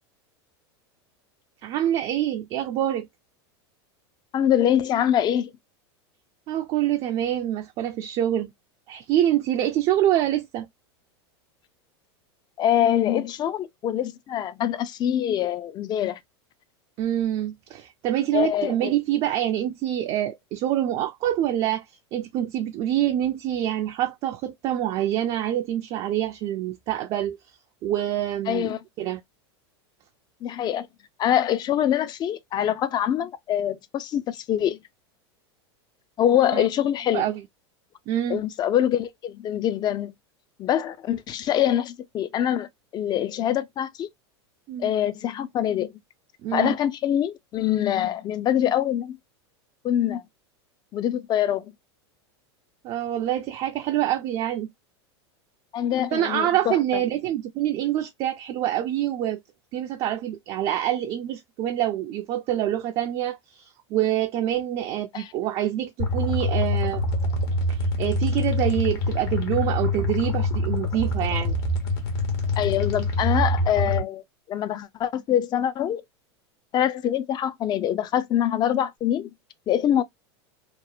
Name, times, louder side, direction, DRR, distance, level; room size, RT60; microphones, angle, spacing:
voice 1, 1.6-3.1 6.5-8.5 8.9-10.7 17.0-21.9 22.1-27.4 27.8-29.2 36.5-36.7 37.1-37.4 38.1-38.4 44.7-44.9 46.4-46.8 52.8-54.7 56.1-59.4 59.7-67.1 67.7-71.6, right 12 dB, 40° right, 0.4 m, -26 dB
voice 2, 4.3-5.5 12.6-16.2 18.3-18.9 28.5-28.8 30.4-30.9 31.2-34.8 36.2-37.2 38.3-40.1 40.6-44.1 44.8-45.9 46.5-49.2 49.8-50.2 50.9-51.7 55.7-57.0 65.1-65.3 72.6-74.2 74.5-76.0 76.7-79.3 79.7-80.0, left 10 dB, 30° left, 0.4 m, -24 dB
sound 1, 66.0-74.0, left 2 dB, 65° left, 1.0 m, -25 dB
2.9 x 2.0 x 2.3 m
hypercardioid pair, 115°, 14 cm